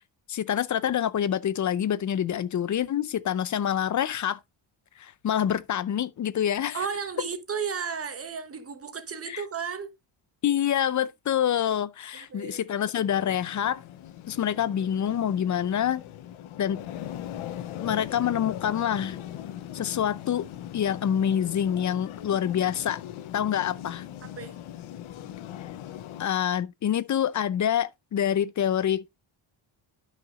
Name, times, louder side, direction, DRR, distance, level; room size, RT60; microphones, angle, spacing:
voice 1, 0.3-4.4 5.0-6.8 9.3-9.4 10.4-13.8 14.3-16.0 16.6-16.8 17.8-19.2 19.7-20.5 20.7-23.0 23.3-24.0 26.2-29.1, left 9 dB, 40° left, 0.5 m, -26 dB
voice 2, 6.7-9.9 12.1-12.7 24.2-24.5, right 6 dB, 30° right, 1.0 m, -34 dB
sound 1, 13.0-26.3, left 11 dB, 90° left, 0.8 m, -40 dB
11.0 x 5.9 x 2.4 m
cardioid pair, 135°, 47 cm